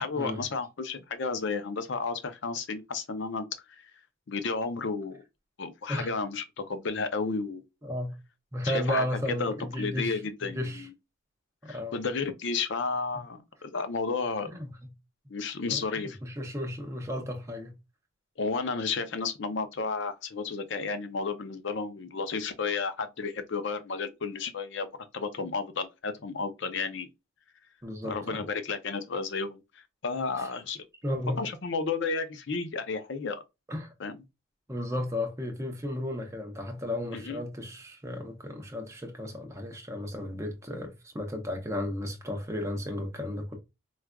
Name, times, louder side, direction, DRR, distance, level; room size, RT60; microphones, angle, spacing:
voice 1, 0.0-3.9 4.3-5.2 5.6-7.6 8.6-10.9 11.7-14.5 15.3-16.2 18.4-27.1 28.0-30.8 31.4-33.4 34.0-34.2 37.1-37.4, left 4 dB, 60° left, 0.5 m, -32 dB
voice 2, 7.8-8.1 8.5-10.8 11.6-12.0 14.5-14.7 15.7-17.7 27.8-28.4 30.4-30.5 31.0-31.4 33.7-33.9 34.7-43.6, left 1 dB, 15° right, 0.6 m, -34 dB
4.6 x 2.4 x 2.2 m
head